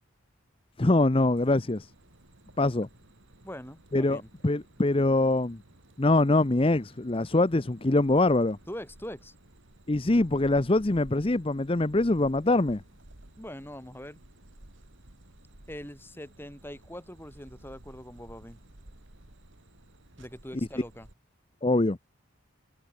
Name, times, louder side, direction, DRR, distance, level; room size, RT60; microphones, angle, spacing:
voice 1, 0.8-1.9 2.6-2.9 3.9-5.6 6.0-8.6 9.9-12.8 21.6-22.0, left 2 dB, 25° left, 0.6 m, -24 dB
sound 1, 1.4-21.1, right 1 dB, 60° right, 2.5 m, -54 dB
voice 2, 3.4-4.3 8.7-9.3 13.4-14.2 15.7-18.6 20.2-21.1, equal, 10° left, 5.7 m, -42 dB
head